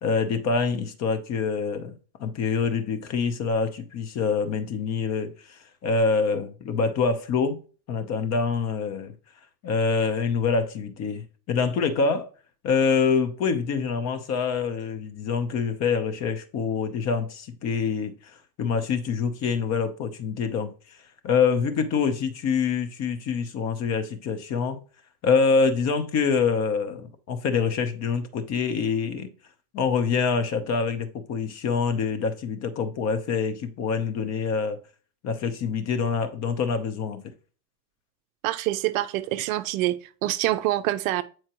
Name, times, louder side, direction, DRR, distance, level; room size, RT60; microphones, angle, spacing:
voice 1, 0.0-1.9 2.2-7.6 7.9-9.1 9.6-12.3 12.6-20.7 21.2-24.8 25.2-29.3 29.7-34.8 35.2-37.2, left 5 dB, 30° left, 0.9 m, -25 dB
voice 2, 38.4-41.2, right 15 dB, 55° right, 0.6 m, -26 dB
8.7 x 4.4 x 3.0 m
supercardioid pair, 135°, 50 cm